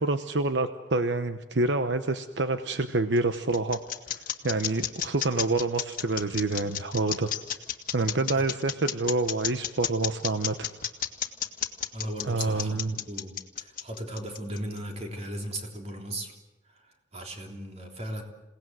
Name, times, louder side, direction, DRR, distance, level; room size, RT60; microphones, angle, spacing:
voice 1, 0.0-3.8 4.1-7.3 7.9-10.7 12.2-13.0, right 2 dB, 75° right, 9 dB, 1.0 m, -27 dB
sound 1, 2.9-14.8, left 10 dB, 50° left, 1.6 m, -32 dB
voice 2, 11.9-16.3 16.7-18.2, right 1 dB, 35° right, 2 dB, 3.5 m, -37 dB
28.0 x 18.0 x 7.9 m, 1.0 s
head